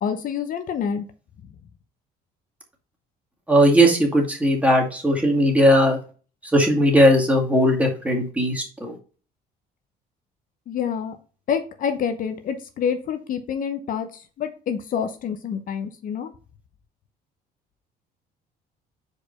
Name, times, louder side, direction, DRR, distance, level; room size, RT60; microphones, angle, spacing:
voice 1, 0.0-1.0 10.7-11.2 11.5-14.1 14.4-16.3, left 7 dB, 55° left, 8 dB, 0.8 m, -27 dB
voice 2, 3.5-6.0 6.5-9.0, equal, 10° right, 0 dB, 2.2 m, -18 dB
5.0 x 4.4 x 5.2 m, 0.37 s
cardioid pair, 110°, 17 cm